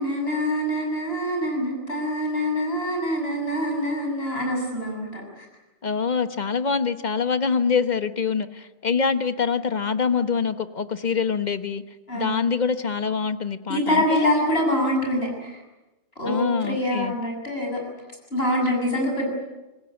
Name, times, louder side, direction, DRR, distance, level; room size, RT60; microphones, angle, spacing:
voice 1, 0.0-5.5 12.1-12.4 13.7-15.6 16.2-17.8 18.3-19.3, equal, 60° left, 1 dB, 7.4 m, -25 dB
voice 2, 5.8-11.8 12.1-14.3 16.2-17.1, left 5 dB, 40° left, 10 dB, 1.3 m, -25 dB
25.0 x 20.0 x 9.7 m, 1.1 s
omnidirectional pair, 1.2 m